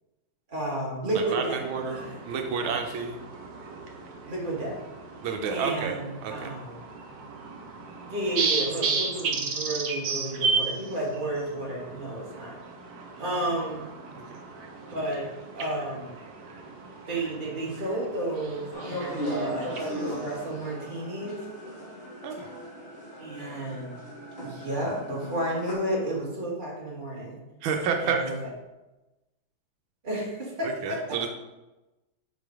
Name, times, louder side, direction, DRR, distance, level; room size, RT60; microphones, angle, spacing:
voice 1, 0.5-2.2 2.6-2.9 4.2-4.8 5.5-6.8 8.1-12.6 13.2-13.9 14.9-15.3 15.6-16.2 17.1-21.4 23.2-24.0 24.4-27.4 28.0-28.5 30.0-31.0, right 1 dB, 25° right, -4 dB, 1.9 m, -32 dB
voice 2, 1.1-3.2 5.2-5.9 6.2-6.5 22.2-22.5 27.6-28.2 30.6-31.3, right 6 dB, 85° right, 4 dB, 1.5 m, -30 dB
sound 1, 1.6-20.5, right 4 dB, 55° right, 1.3 m, -35 dB
sound 2, 18.7-25.7, equal, 30° left, 2.1 m, -37 dB
5.9 x 5.2 x 4.6 m, 1.1 s
omnidirectional pair, 2.2 m